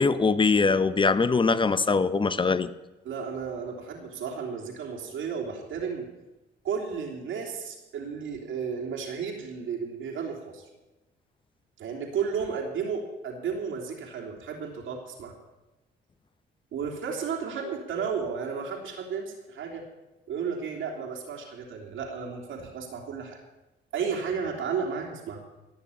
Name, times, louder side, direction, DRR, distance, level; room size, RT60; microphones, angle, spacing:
voice 1, 0.0-2.7, left 4 dB, 25° left, 14 dB, 0.8 m, -22 dB
voice 2, 3.0-6.1 6.6-10.6 11.8-15.3 16.7-19.8 20.3-23.4 23.9-25.4, right 6 dB, 80° right, 0 dB, 3.3 m, -33 dB
17.5 x 6.9 x 8.6 m, 1.1 s
cardioid pair, 90°, 20 cm